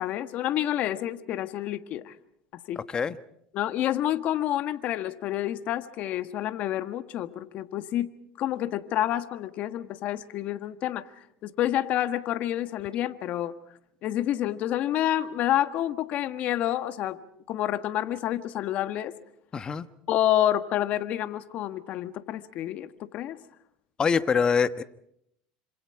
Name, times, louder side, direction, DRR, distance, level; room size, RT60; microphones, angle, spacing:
voice 1, 0.0-2.1 2.7-2.8 3.5-8.1 8.4-11.0 11.4-13.5 14.0-17.2 17.5-19.1 20.1-23.4, left 12 dB, 55° left, 10 dB, 1.5 m, -28 dB
voice 2, 19.5-19.9 24.0-24.8, left 6 dB, 30° left, 12 dB, 1.1 m, -24 dB
27.0 x 26.5 x 4.8 m, 0.73 s
supercardioid pair, 105°, 3 cm